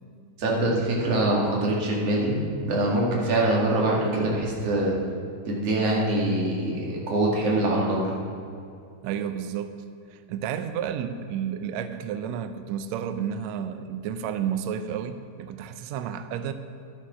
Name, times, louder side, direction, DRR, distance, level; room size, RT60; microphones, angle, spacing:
voice 1, 0.4-4.9 5.5-8.1, right 1 dB, 50° right, -2 dB, 2.8 m, -24 dB
voice 2, 9.0-9.7 10.1-16.5, right 8 dB, 90° right, 9 dB, 1.5 m, -31 dB
12.0 x 8.8 x 6.1 m, 2.5 s
omnidirectional pair, 3.8 m